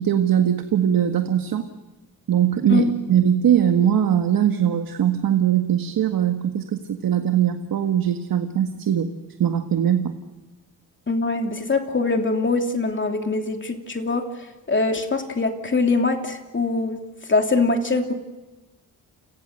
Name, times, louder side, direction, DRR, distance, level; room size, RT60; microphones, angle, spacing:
voice 1, 0.0-1.6 2.3-9.1 9.4-10.1, right 9 dB, 70° right, 6 dB, 1.9 m, -21 dB
voice 2, 11.1-18.1, left 3 dB, 35° left, 4 dB, 2.9 m, -23 dB
30.0 x 25.0 x 6.7 m, 1.1 s
cardioid pair, 95°, 36 cm